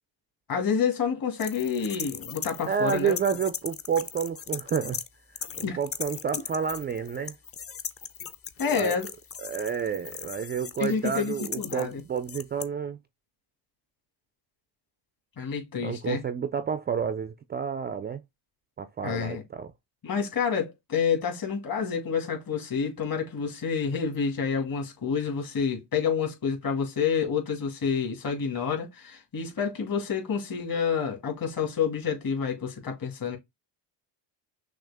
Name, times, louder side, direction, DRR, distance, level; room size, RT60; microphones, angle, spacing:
voice 1, 0.5-3.2 5.6-5.8 8.6-9.1 10.8-12.0 15.4-16.2 19.0-19.4 20.0-33.4, left 6 dB, 45° left, 2.2 m, -28 dB
sound 1, 1.4-5.1 5.4-12.6, left 7 dB, 30° left, 0.6 m, -38 dB
voice 2, 2.7-5.0 5.3-7.4 8.7-9.0 9.4-13.0 15.8-18.2 18.8-19.7, right 7 dB, 25° right, 0.3 m, -30 dB
6.3 x 2.4 x 3.4 m
cardioid pair, 110°, 46 cm